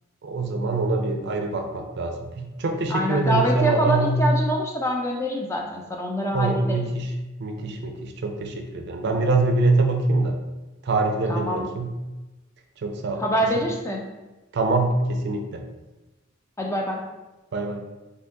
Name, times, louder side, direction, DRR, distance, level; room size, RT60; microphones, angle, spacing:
voice 1, 0.2-4.3 6.3-7.1 7.4-10.4 10.8-11.9 12.8-13.2 14.5-15.6 17.5-17.8, right 2 dB, 55° right, 4 dB, 0.4 m, -24 dB
voice 2, 2.9-6.8 11.3-11.7 13.2-14.0 16.6-17.0, equal, 15° left, 0 dB, 0.3 m, -25 dB
2.6 x 2.6 x 3.5 m, 1.1 s
head